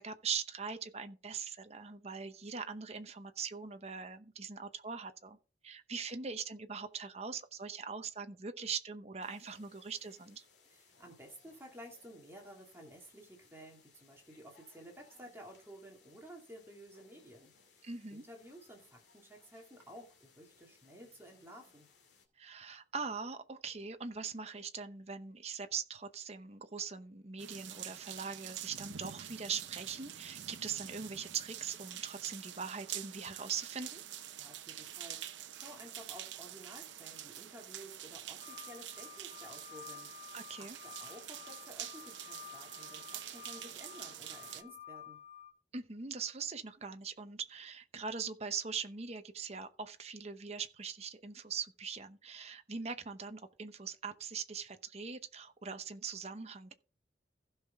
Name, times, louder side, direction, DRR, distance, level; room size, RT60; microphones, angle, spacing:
voice 1, 0.0-5.4 5.6-10.4 17.8-18.2 22.4-34.0 40.3-40.8 45.7-56.7, right 6 dB, 35° right, 0.8 m, -41 dB
sound 1, 9.2-22.3, left 5 dB, 75° left, 2.4 m, -66 dB
voice 2, 10.7-21.9 34.4-45.2, equal, 15° right, 2.3 m, -53 dB
sound 2, 27.4-44.6, right 11 dB, 85° right, 0.8 m, -46 dB
sound 3, 38.4-45.5, left 10 dB, 40° left, 3.1 m, -52 dB
15.5 x 5.7 x 3.6 m
head